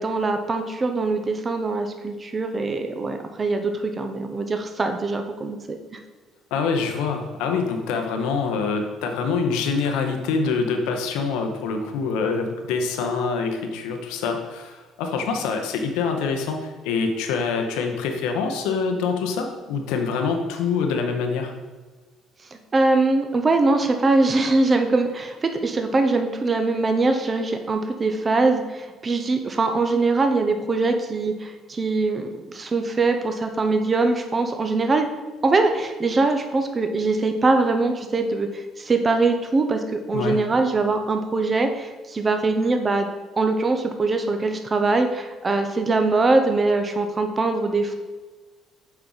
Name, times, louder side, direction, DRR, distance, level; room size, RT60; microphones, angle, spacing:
voice 1, 0.0-6.0 22.7-35.1 35.4-43.1 43.4-47.9, right 3 dB, 35° right, 6 dB, 0.8 m, -22 dB
voice 2, 6.5-21.5 40.1-40.4, left 5 dB, 80° left, 4 dB, 0.8 m, -25 dB
7.2 x 4.5 x 3.9 m, 1.3 s
hypercardioid pair, 60°, 0 cm